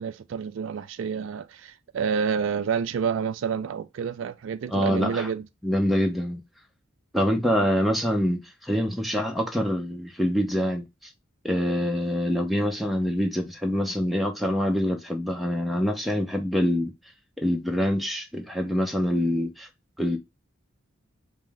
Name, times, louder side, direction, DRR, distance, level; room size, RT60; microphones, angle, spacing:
voice 1, 0.0-5.5, right 6 dB, 65° right, 0.3 m, -29 dB
voice 2, 4.7-5.3 5.6-6.4 7.1-10.9 11.4-16.9 17.4-19.7 20.0-20.2, equal, ahead, 0.7 m, -25 dB
5.1 x 2.1 x 3.5 m
head